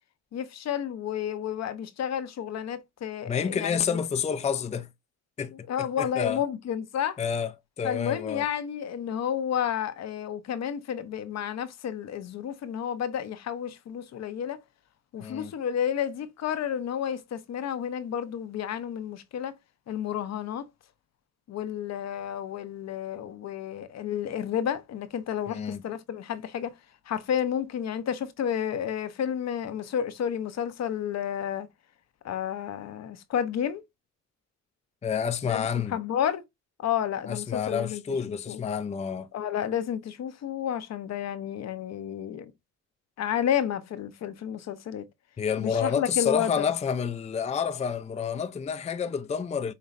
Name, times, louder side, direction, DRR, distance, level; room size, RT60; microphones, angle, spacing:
voice 1, 0.3-4.0 5.7-7.2 7.8-14.6 15.1-19.5 19.9-20.7 21.5-26.7 27.1-31.7 32.2-33.8 35.5-36.4 36.8-38.0 38.3-38.6 39.3-42.5 43.2-45.0 45.6-46.7, left 9 dB, 60° left, 0.8 m, -31 dB
voice 2, 3.3-4.9 5.4-5.5 5.8-6.4 7.2-8.4 15.2-15.5 25.5-25.8 35.0-36.0 37.3-39.3 45.4-49.7, left 7 dB, 25° left, 0.5 m, -29 dB
5.3 x 3.1 x 2.5 m
cardioid pair, 90°, 30 cm